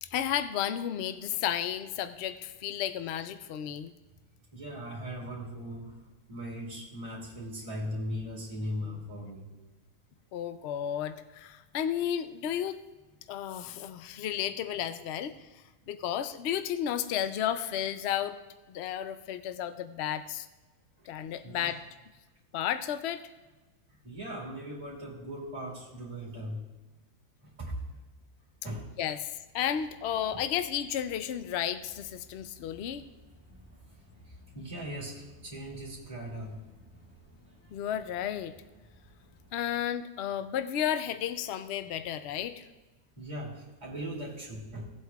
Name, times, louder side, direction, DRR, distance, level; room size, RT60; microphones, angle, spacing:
voice 1, 0.0-3.9 10.3-12.8 13.3-15.3 15.9-18.4 18.7-20.5 21.1-21.8 22.5-23.3 29.0-33.0 37.7-38.5 39.5-42.6, left 10 dB, 80° left, 10 dB, 0.6 m, -33 dB
voice 2, 4.5-9.5 14.2-14.3 21.0-21.1 21.4-21.8 24.0-26.6 27.4-27.7 28.6-28.9 33.7-33.8 34.2-36.6 43.2-44.9, equal, 20° right, -6 dB, 2.3 m, -39 dB
sound 1, 29.6-39.9, left 1 dB, 10° left, 2.0 m, -57 dB
17.0 x 8.0 x 2.4 m, 1.2 s
omnidirectional pair, 1.7 m